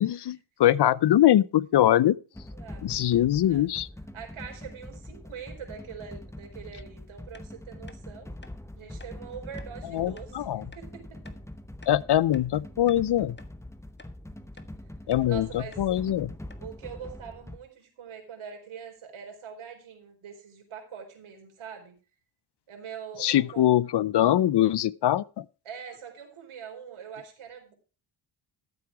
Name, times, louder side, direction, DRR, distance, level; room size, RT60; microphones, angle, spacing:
voice 1, 0.0-2.1 2.8-3.9 9.9-10.6 11.9-13.4 15.1-16.3 23.2-25.4, left 12 dB, 55° left, 0.6 m, -23 dB
sound 1, 2.3-17.6, left 1 dB, 5° left, 0.9 m, -43 dB
voice 2, 2.5-3.0 3.4-3.7 4.1-8.3 8.8-10.4 10.7-11.2 15.2-15.8 16.6-21.9 22.7-23.7 25.6-27.7, right 7 dB, 75° right, 4.4 m, -43 dB
sound 2, 7.3-7.5 7.9-8.0 8.4-8.6 9.0-9.1 9.6-9.7 10.2-10.3 10.7-10.9 11.3-11.4 11.8-12.5 12.9-13.0 13.4-13.5 14.0-14.2 14.6-14.7 15.1-15.3 15.7-15.9 16.2-16.3 16.5-16.7, left 3 dB, 20° left, 1.4 m, -52 dB
13.5 x 7.9 x 4.6 m
cardioid pair, 95°, 49 cm